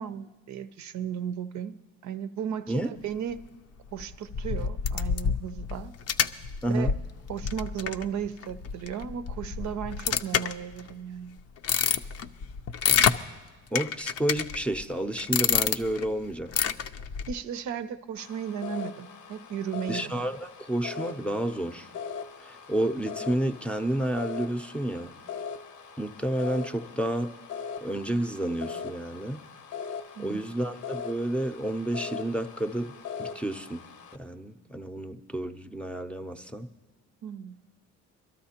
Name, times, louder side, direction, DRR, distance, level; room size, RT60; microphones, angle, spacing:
voice 1, 0.0-1.8 2.0-3.4 3.9-5.9 6.7-6.9 7.3-11.4 17.3-20.2 30.2-30.5 37.2-37.5, right 8 dB, 70° right, 10 dB, 0.6 m, -35 dB
sound 1, 4.0-10.9 11.4-13.2 13.8-14.8 15.2-16.1 16.5-17.3, left 8 dB, 55° left, 0.5 m, -28 dB
voice 2, 6.6-6.9 13.7-16.6 19.9-21.9 22.4-25.1 26.0-27.3 27.8-29.4 30.2-32.9 33.2-33.8 34.2-36.7, right 1 dB, 5° left, 8 dB, 0.6 m, -30 dB
sound 2, 18.2-34.2, left 6 dB, 75° left, 0.9 m, -40 dB
23.0 x 12.5 x 2.9 m, 1.2 s
cardioid pair, 90°, 30 cm